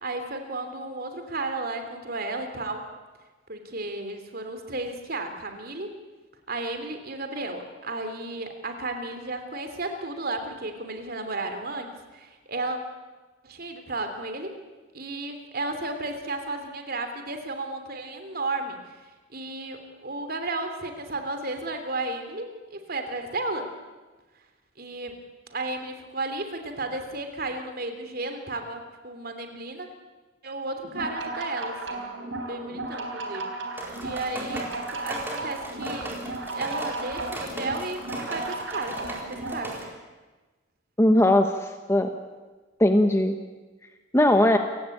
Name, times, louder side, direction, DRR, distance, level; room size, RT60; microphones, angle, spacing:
voice 1, 0.0-2.8 3.5-5.9 6.5-12.8 13.4-14.5 14.9-18.8 19.3-23.7 24.8-25.2 25.5-29.9 30.4-32.1 32.5-33.5 34.0-36.2 36.5-39.8, right 2 dB, 50° right, 6 dB, 3.2 m, -33 dB
sound 1, 30.8-39.7, right 2 dB, 80° right, 3.9 m, -35 dB
sound 2, 33.8-39.8, right 1 dB, 10° right, 4.2 m, -38 dB
voice 2, 41.0-42.1 42.8-43.4 44.1-44.6, left 1 dB, 15° left, 6 dB, 1.1 m, -19 dB
28.5 x 16.5 x 8.7 m, 1.3 s
head